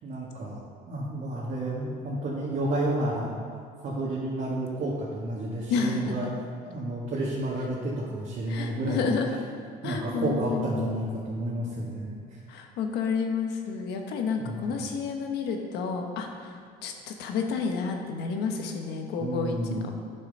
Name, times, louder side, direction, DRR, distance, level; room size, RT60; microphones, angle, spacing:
voice 1, 0.0-3.4 3.8-6.3 6.7-9.1 9.8-12.4 14.4-14.6 19.2-19.9, right 1 dB, 55° right, -6 dB, 2.0 m, -31 dB
voice 2, 5.7-6.1 8.5-9.4 9.8-10.8 12.5-16.5 16.8-19.9, left 5 dB, 85° left, 3 dB, 1.3 m, -30 dB
10.5 x 7.2 x 5.5 m, 2.1 s
cardioid pair, 110°, 17 cm